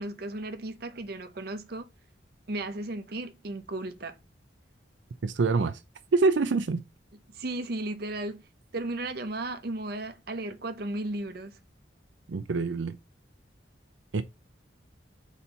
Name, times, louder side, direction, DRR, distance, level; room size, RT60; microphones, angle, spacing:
voice 1, 0.0-1.9 2.5-4.2 7.3-8.4 8.7-11.5, right 2 dB, 55° right, 0.8 m, -35 dB
voice 2, 5.2-5.8 6.1-6.8 12.3-13.0 14.1-14.2, right 4 dB, 85° right, 0.5 m, -25 dB
4.3 x 4.1 x 5.4 m
head